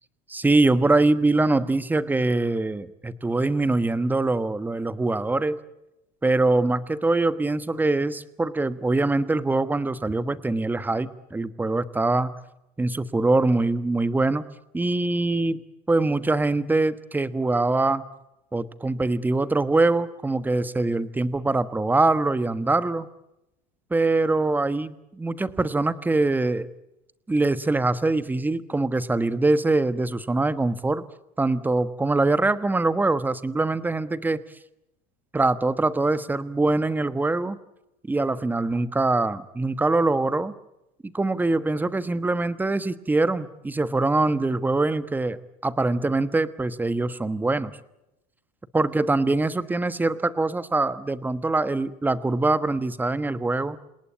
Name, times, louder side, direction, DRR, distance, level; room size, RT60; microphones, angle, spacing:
voice 1, 0.3-5.6 6.2-12.3 12.8-14.4 14.7-15.6 15.9-18.0 18.5-23.1 23.9-26.7 27.3-31.0 31.4-34.4 35.3-37.6 38.1-40.5 41.0-47.7 48.7-53.8, right 2 dB, 10° right, 14 dB, 1.2 m, -23 dB
28.0 x 18.5 x 8.6 m, 0.89 s
supercardioid pair, 125°, 20 cm